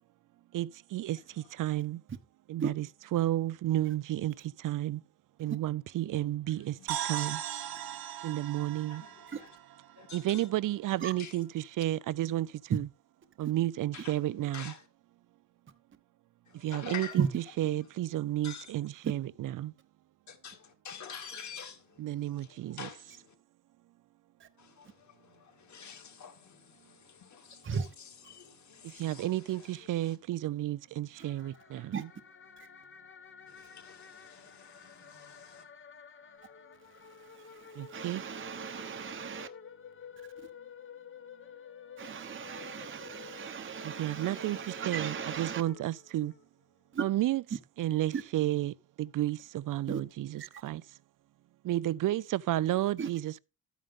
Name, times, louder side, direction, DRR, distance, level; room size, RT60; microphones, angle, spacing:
voice 1, 0.5-1.2 1.6-2.0 2.5-2.9 3.1-4.3 4.6-5.0 5.4-6.6 7.1-7.4 8.2-9.0 10.1-11.5 11.8-12.9 13.4-14.7 16.6-19.7 22.0-22.9 29.0-31.8 38.0-38.2 44.0-44.6 44.9-46.3 47.0-47.4 47.8-48.7 49.2-49.4 49.7-50.8 51.7-53.4, right 14 dB, 60° right, 0.6 m, -31 dB
voice 2, 1.2-1.9 6.5-6.9 8.9-9.6 10.0-10.6 11.2-11.4 13.9-14.2 14.5-14.9 16.4-17.2 17.8-17.9 18.4-18.9 20.3-23.3 24.6-30.2 33.5-35.7, left 7 dB, 50° left, 2.6 m, -48 dB
sound 1, 6.9-10.5, right 11 dB, 90° right, 1.6 m, -38 dB
sound 2, 31.2-46.4, left 6 dB, 35° left, 1.0 m, -51 dB
voice 3, 37.2-39.5 42.0-45.6 46.9-47.0 48.1-48.2 49.9-50.0 53.0-53.1, right 6 dB, 35° right, 1.0 m, -36 dB
12.5 x 9.2 x 3.6 m
cardioid pair, 115°, 36 cm